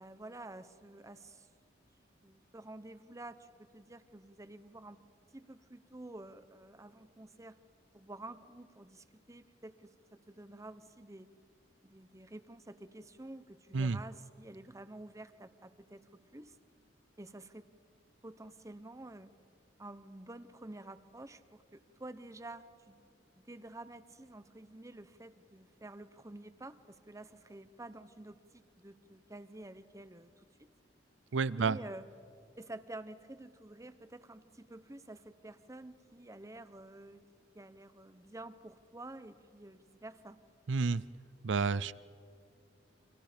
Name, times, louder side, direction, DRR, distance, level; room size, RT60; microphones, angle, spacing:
voice 1, 0.0-1.5 2.2-3.5 3.7-5.0 5.3-7.6 7.9-11.3 11.8-16.6 17.2-17.7 18.2-19.3 19.8-23.0 23.4-30.7 31.6-32.1 32.5-37.2 37.5-40.4, right 2 dB, 15° right, 0.9 m, -50 dB
voice 2, 31.3-31.8 40.7-41.0 41.4-41.9, right 4 dB, 85° right, 0.5 m, -30 dB
30.0 x 26.0 x 5.2 m
head